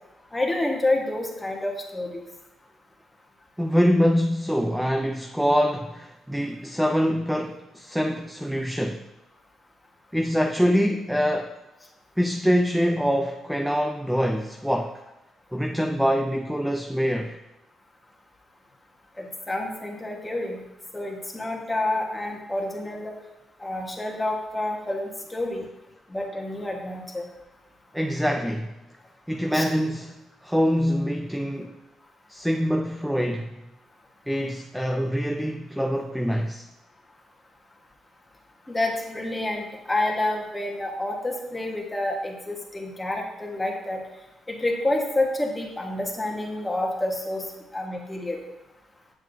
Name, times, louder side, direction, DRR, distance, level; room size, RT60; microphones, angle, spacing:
voice 1, 0.3-2.2 19.2-20.6 20.9-23.1 23.6-25.6 26.1-27.2 29.5-29.6 38.7-44.0 44.5-47.4 47.7-48.4, left 1 dB, 15° left, 1.4 m, -28 dB
voice 2, 3.6-9.0 10.1-11.5 12.2-15.0 15.5-17.4 27.9-28.7 29.3-30.1 30.4-31.7 32.3-33.5 34.3-36.7, equal, ahead, 0.4 m, -24 dB
7.5 x 7.2 x 2.7 m
cardioid pair, 90°, 0 cm